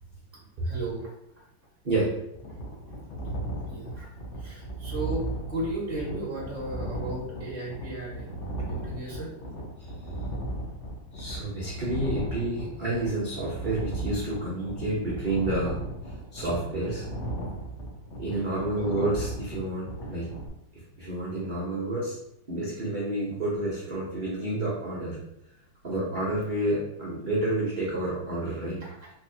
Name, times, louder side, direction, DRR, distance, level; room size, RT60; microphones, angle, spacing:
voice 1, 0.6-1.1 3.7-9.7 15.3-15.4 16.1-16.3 18.5-18.6 28.8-29.1, right 1 dB, 15° left, -6 dB, 0.6 m, -36 dB
sound 1, 2.3-20.5, right 1 dB, 75° left, 0.6 m, -36 dB
voice 2, 11.1-15.8 16.3-17.1 18.2-20.3 21.0-22.2 22.5-25.2 25.8-28.8, right 2 dB, 60° right, -8 dB, 0.5 m, -29 dB
3.9 x 2.8 x 2.7 m, 0.80 s
omnidirectional pair, 2.2 m